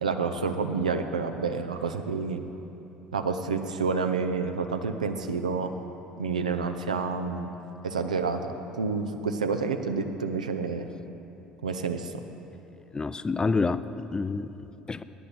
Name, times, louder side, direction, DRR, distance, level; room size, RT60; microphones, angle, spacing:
voice 1, 0.0-2.4 3.1-5.7 6.2-7.5 7.8-10.9 11.6-12.1, right 4 dB, 85° right, 7 dB, 0.5 m, -29 dB
voice 2, 12.9-15.0, left 4 dB, 20° left, 14 dB, 0.3 m, -28 dB
9.4 x 7.9 x 7.0 m, 3.0 s
figure-of-eight pair, 60°, 4 cm